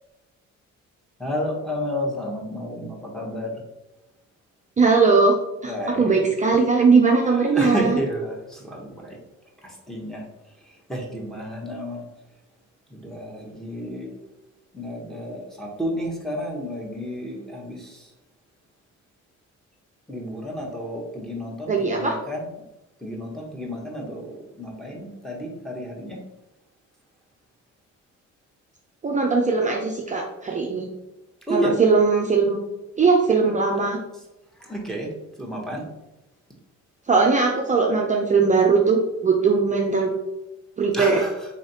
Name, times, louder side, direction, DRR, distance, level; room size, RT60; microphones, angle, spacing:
voice 1, 1.2-2.9 3.1-3.5 5.6-6.3 7.5-8.3 9.0-9.2 9.9-10.2 10.9-12.0 13.0-14.1 14.7-17.8 20.1-22.5 23.0-24.2 24.6-26.2 31.5-31.7 34.7-35.1 35.4-35.8 40.9-41.3, equal, ahead, -2 dB, 1.1 m, -30 dB
voice 2, 4.8-5.4 5.6-8.0 21.7-22.2 29.0-30.9 31.5-32.6 33.0-34.0 37.1-40.1 40.8-41.2, right 4 dB, 25° right, 0 dB, 0.5 m, -19 dB
4.0 x 3.1 x 2.8 m, 0.96 s
cardioid pair, 90°, 30 cm